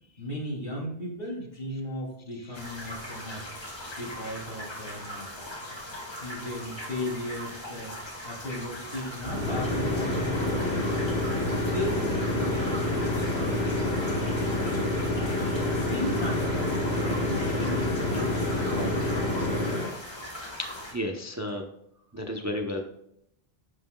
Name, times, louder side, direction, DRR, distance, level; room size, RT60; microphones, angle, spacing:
voice 1, 0.2-3.4 3.9-5.5 6.2-7.9 8.2-10.9 11.4-14.2 15.7-19.2, equal, 60° left, -4 dB, 3.3 m, -36 dB
sound 1, 2.5-20.9, left 1 dB, 25° left, 1.8 m, -40 dB
sound 2, 9.2-19.9, left 1 dB, 80° left, 3.2 m, -28 dB
voice 2, 20.9-21.6 22.1-22.8, left 1 dB, 20° right, 3 dB, 0.7 m, -33 dB
11.0 x 7.7 x 2.3 m, 0.75 s
omnidirectional pair, 1.0 m